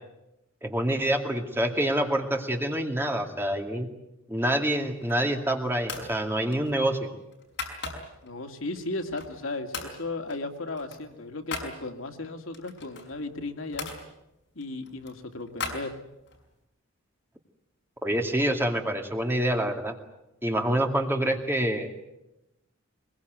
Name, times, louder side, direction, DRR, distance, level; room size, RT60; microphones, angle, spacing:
voice 1, 0.6-3.9 4.3-7.1 18.0-19.9 20.4-21.9, right 1 dB, 10° right, 3 dB, 2.3 m, -26 dB
sound 1, 4.8-5.4 5.8-6.1 6.5-8.3 8.8-9.4 9.7-10.0 10.3-11.7 12.5-14.0 14.6-16.4, left 4 dB, 60° left, 5.4 m, -38 dB
voice 2, 8.2-13.9 14.6-15.9, left 2 dB, 75° left, 5 dB, 2.3 m, -35 dB
22.5 x 22.0 x 9.3 m, 0.90 s
head